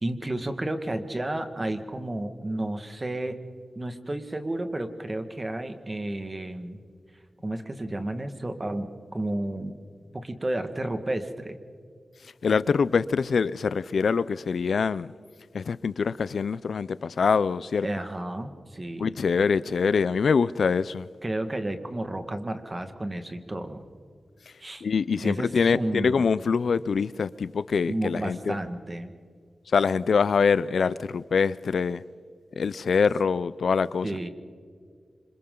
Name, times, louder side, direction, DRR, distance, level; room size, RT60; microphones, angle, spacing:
voice 1, 0.0-3.4 3.7-6.8 7.4-9.7 10.1-11.6 17.8-19.1 21.2-23.8 24.6-24.8 25.2-26.3 27.9-29.1 34.0-34.3, right 1 dB, 25° right, 1.7 m, -32 dB
voice 2, 12.4-15.1 15.5-17.9 19.0-21.1 24.8-28.6 29.7-32.0 32.6-34.1, left 5 dB, 85° left, 0.5 m, -24 dB
27.5 x 25.5 x 3.9 m
wide cardioid pair, 100°, 0 cm